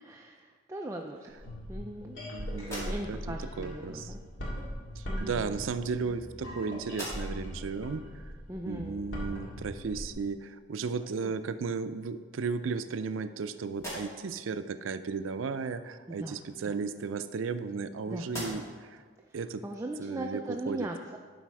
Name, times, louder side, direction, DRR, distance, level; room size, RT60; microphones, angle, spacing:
voice 1, 0.0-1.3 1.7-2.2 2.6-4.2 5.1-5.5 8.5-9.0 11.2-11.3 16.1-16.8 18.1-18.3 19.2-21.2, right 1 dB, 15° right, 2 dB, 0.4 m, -39 dB
sound 1, 1.3-10.1, equal, 70° left, 2.0 m, -40 dB
voice 2, 2.3-4.1 5.0-8.3 8.7-19.0 19.3-19.6 20.0-20.9, right 5 dB, 80° right, 11 dB, 0.4 m, -35 dB
sound 2, 2.6-3.4 4.5-4.7 5.6-6.5 6.8-7.6 8.1-8.2 10.8-10.9 11.4-12.1 12.6-13.4 13.7-14.4 16.4-17.9 18.2-18.9, equal, 15° left, 2.5 m, -44 dB
12.0 x 4.1 x 4.7 m, 1.5 s
head